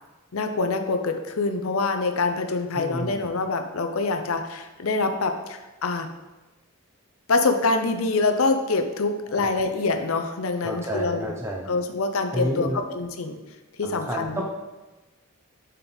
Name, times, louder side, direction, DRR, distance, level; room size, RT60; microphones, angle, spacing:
voice 1, 0.3-6.1 7.3-11.3 11.7-13.4 13.8-14.4, left 3 dB, 70° left, 6 dB, 0.6 m, -25 dB
voice 2, 2.7-3.2 9.3-9.5 10.6-11.7 12.3-12.8 13.8-14.4, right 1 dB, 10° right, -1 dB, 0.5 m, -30 dB
6.9 x 4.4 x 3.9 m, 1.1 s
head